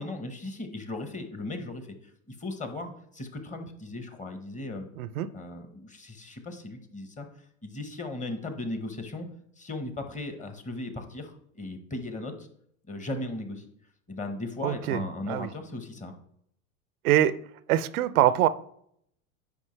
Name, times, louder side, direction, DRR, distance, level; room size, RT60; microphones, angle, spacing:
voice 1, 0.0-1.9 2.3-4.9 5.3-7.3 7.6-9.3 9.6-12.5 12.9-13.6 14.1-16.1, left 2 dB, 15° left, 6 dB, 1.2 m, -37 dB
voice 2, 5.0-5.3 14.6-15.5 17.0-17.3 17.7-18.5, right 12 dB, 85° right, 16 dB, 0.7 m, -24 dB
9.9 x 5.2 x 3.3 m, 0.69 s
supercardioid pair, 110°, 42 cm